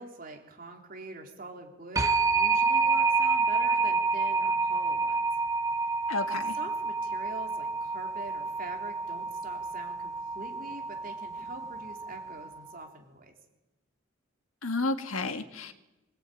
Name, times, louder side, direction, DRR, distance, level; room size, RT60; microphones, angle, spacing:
voice 1, 0.0-5.3 6.3-13.4, right 2 dB, 40° right, 2 dB, 3.5 m, -44 dB
sound 1, 2.0-12.6, right 4 dB, 15° right, 1.0 m, -28 dB
voice 2, 6.1-6.5 14.6-15.7, left 3 dB, 85° left, 7 dB, 1.8 m, -31 dB
24.5 x 19.5 x 9.2 m, 1.0 s
head